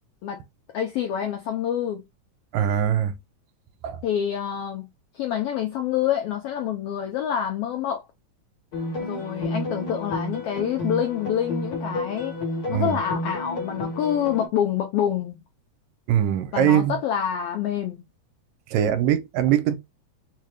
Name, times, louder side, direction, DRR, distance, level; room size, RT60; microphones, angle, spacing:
voice 1, 0.7-2.0 4.0-4.9 5.1-8.0 9.0-12.4 12.7-15.4 16.5-18.0, left 9 dB, 85° left, 1.3 m, -27 dB
voice 2, 2.5-3.2 3.8-4.0 12.7-13.0 16.1-17.0 18.7-19.8, right 10 dB, 80° right, 1.9 m, -22 dB
sound 1, 8.7-14.5, left 1 dB, 65° left, 0.9 m, -31 dB
4.5 x 2.2 x 3.1 m
omnidirectional pair, 3.3 m